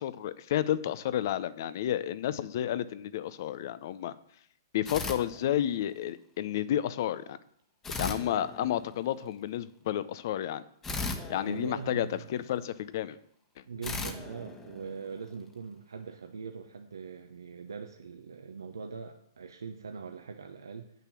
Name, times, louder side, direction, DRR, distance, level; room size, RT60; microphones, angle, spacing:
voice 1, 0.0-4.1 4.7-7.4 8.0-10.6 11.3-13.2, left 11 dB, 55° left, 15 dB, 0.7 m, -31 dB
sound 1, 4.8-6.0 7.8-9.2 10.8-12.5 13.8-15.4, left 3 dB, 15° left, 1.3 m, -38 dB
voice 2, 11.4-12.3 13.6-20.9, right 5 dB, 85° right, 5 dB, 0.8 m, -42 dB
8.4 x 6.7 x 6.1 m, 0.67 s
hypercardioid pair, 125°, 2 cm